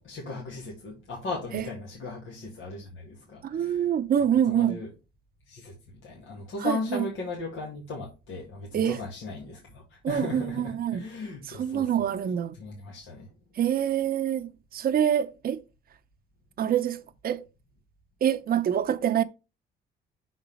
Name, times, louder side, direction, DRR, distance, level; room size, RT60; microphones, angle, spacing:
voice 1, 0.0-4.9 5.5-12.1 12.5-13.3, left 3 dB, 80° left, 2.0 m, -37 dB
voice 2, 3.5-4.8 6.6-7.1 8.7-9.0 10.0-11.0 11.5-12.5 13.6-15.6 16.6-17.4 18.2-19.2, right 9 dB, 50° right, 0.6 m, -26 dB
5.9 x 4.0 x 5.4 m
cardioid pair, 90°, 20 cm